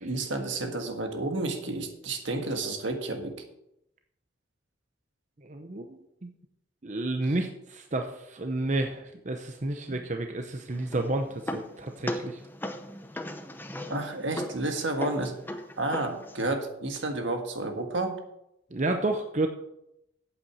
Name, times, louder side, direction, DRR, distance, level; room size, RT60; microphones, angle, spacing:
voice 1, 0.0-3.4 9.9-10.0 13.9-15.3 15.8-18.2, right 2 dB, 75° right, 5 dB, 1.7 m, -31 dB
voice 2, 5.4-6.3 6.8-12.4 18.7-19.5, right 2 dB, 40° right, 5 dB, 0.8 m, -31 dB
sound 1, 10.7-16.5, left 1 dB, 10° left, 0.8 m, -38 dB
8.8 x 8.2 x 6.3 m, 0.83 s
head